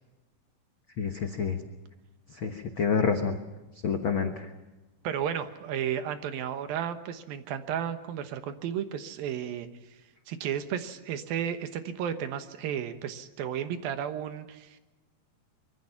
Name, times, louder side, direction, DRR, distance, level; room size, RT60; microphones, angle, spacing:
voice 1, 1.0-1.6 2.4-3.4 3.8-4.3, left 6 dB, 85° left, 5 dB, 1.1 m, -27 dB
voice 2, 5.0-9.7 10.3-14.8, right 9 dB, 75° right, 9 dB, 3.0 m, -33 dB
24.5 x 23.0 x 5.9 m, 1.1 s
omnidirectional pair, 4.4 m